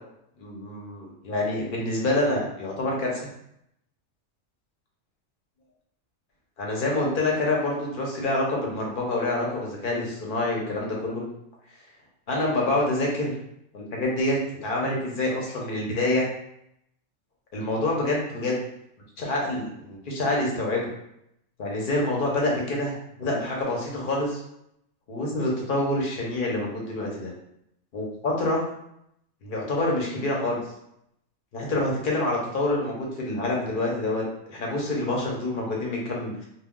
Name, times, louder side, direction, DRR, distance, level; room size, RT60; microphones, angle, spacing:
voice 1, 0.4-3.3 6.6-11.2 12.3-13.3 13.7-16.3 17.5-18.6 19.2-20.9 21.6-24.4 25.1-27.3 27.9-28.7 29.4-30.6 31.5-34.2 34.5-36.3, left 2 dB, 50° left, -2 dB, 0.7 m, -27 dB
2.2 x 2.2 x 3.6 m, 0.77 s
omnidirectional pair, 1.4 m